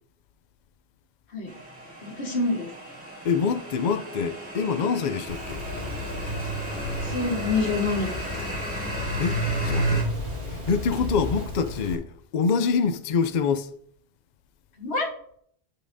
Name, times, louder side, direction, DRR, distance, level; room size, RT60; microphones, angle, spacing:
sound 1, 1.5-10.0, equal, 10° right, 2.1 m, -36 dB
voice 1, 2.0-2.7 7.0-8.1 14.8-15.1, left 3 dB, 80° left, 1.8 m, -26 dB
voice 2, 3.2-5.7 9.2-10.1 10.5-13.7, left 5 dB, 55° left, 0.5 m, -26 dB
Rain, 5.3-11.9, left 3 dB, 45° right, 3.7 m, -38 dB
sound 2, 5.6-11.5, right 1 dB, 85° right, 2.1 m, -31 dB
11.5 x 5.6 x 2.6 m
omnidirectional pair, 1.1 m